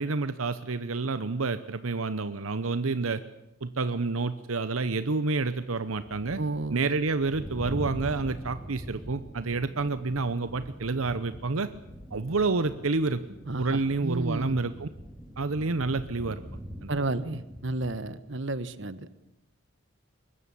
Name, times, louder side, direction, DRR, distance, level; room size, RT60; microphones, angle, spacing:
voice 1, 0.0-3.2 3.6-6.4 6.7-11.7 12.1-13.2 13.6-14.9 15.4-16.4 16.8-16.9, right 3 dB, 80° right, 12 dB, 0.9 m, -29 dB
sound 1, 5.6-18.0, equal, 5° right, 3.2 m, -43 dB
voice 2, 6.4-6.8 13.5-14.6 16.9-19.1, right 2 dB, 60° right, 14 dB, 1.3 m, -32 dB
22.5 x 20.5 x 8.5 m, 0.90 s
head